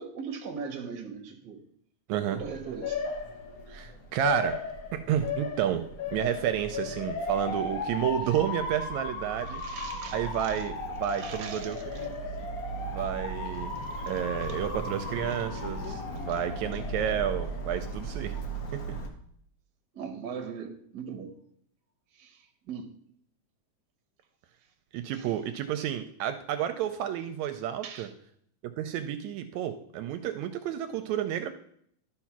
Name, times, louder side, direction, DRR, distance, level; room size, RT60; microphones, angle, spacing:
voice 1, 0.0-1.6 2.3-3.0 9.5-10.6 11.0-11.8 19.9-21.4 22.2-22.9 25.1-25.3 27.8-28.1, right 6 dB, 55° right, 1.3 m, -40 dB
voice 2, 2.1-2.4 3.7-4.6 4.9-5.8 6.1-9.6 10.1-12.2 12.9-13.7 14.1-18.4 18.7-18.8 24.9-28.1 28.6-31.5, right 10 dB, 80° right, 1.8 m, -31 dB
Motor vehicle (road) / Siren, 2.3-19.1, left 2 dB, 90° left, 0.7 m, -35 dB
12.0 x 4.4 x 5.9 m
omnidirectional pair, 3.5 m